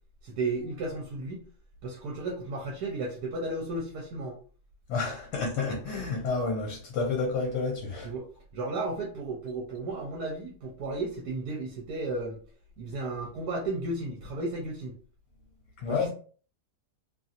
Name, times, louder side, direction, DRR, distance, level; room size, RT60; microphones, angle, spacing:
voice 1, 0.2-1.4 1.8-4.4 8.0-8.3 8.5-12.4 12.8-14.9 15.9-16.1, right 2 dB, 75° right, 1.1 m, -34 dB
voice 2, 4.9-8.1 15.8-16.1, left 4 dB, 75° left, 1.3 m, -30 dB
2.9 x 2.6 x 2.4 m
omnidirectional pair, 1.8 m